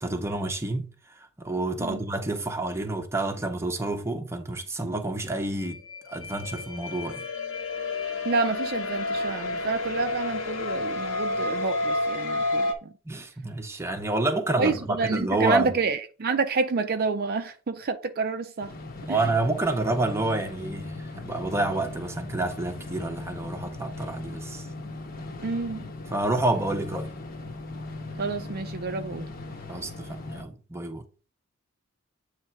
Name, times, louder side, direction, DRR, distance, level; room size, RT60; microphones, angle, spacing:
voice 1, 0.0-0.9 1.4-5.8 6.1-7.2 13.1-15.8 19.1-24.6 26.1-27.1 29.7-31.1, right 2 dB, 15° right, 0.8 m, -28 dB
sound 1, 5.6-12.7, left 2 dB, 70° left, 1.2 m, -30 dB
voice 2, 8.2-12.9 14.6-18.7 25.4-25.9 28.2-29.3, right 4 dB, 45° right, 0.5 m, -28 dB
sound 2, 18.6-30.4, left 2 dB, 45° left, 1.0 m, -39 dB
8.3 x 3.2 x 4.5 m
head